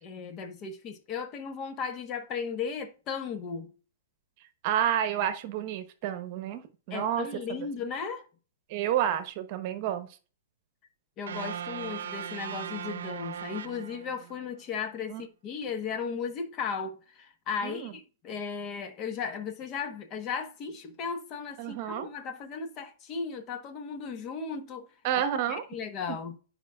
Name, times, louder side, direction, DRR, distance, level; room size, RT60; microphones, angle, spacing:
voice 1, 0.0-3.7 6.9-8.2 11.2-24.9 25.5-26.4, left 6 dB, 30° left, 1.2 m, -36 dB
voice 2, 4.6-6.6 6.9-7.3 8.7-10.1 15.1-15.2 17.6-17.9 21.6-22.1 25.0-25.6 26.1-26.2, right 10 dB, 40° right, 1.0 m, -29 dB
sound 1, 11.3-14.5, right 8 dB, 75° right, 0.7 m, -38 dB
11.0 x 5.3 x 2.4 m
hypercardioid pair, 145°, 0 cm